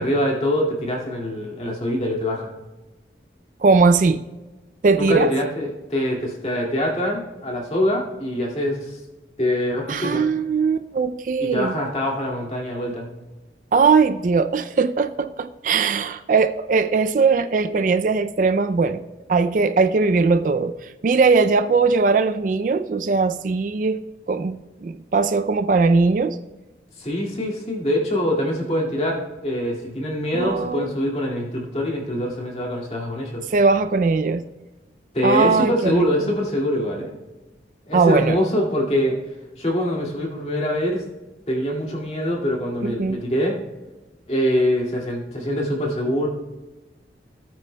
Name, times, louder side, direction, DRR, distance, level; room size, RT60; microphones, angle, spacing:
voice 1, 0.0-2.5 5.0-9.0 9.4-10.2 11.4-13.1 27.0-33.5 35.1-37.1 37.9-39.2 39.6-41.0 41.5-43.6 44.3-46.3, equal, 35° left, -2 dB, 2.1 m, -24 dB
voice 2, 3.6-4.2 4.8-5.3 9.9-11.7 13.7-19.0 19.3-24.0 24.3-26.4 30.3-30.9 33.5-34.5 35.2-36.0 37.9-38.4 42.8-43.2, right 4 dB, 45° right, 10 dB, 0.3 m, -20 dB
17.0 x 9.1 x 2.2 m, 1.2 s
head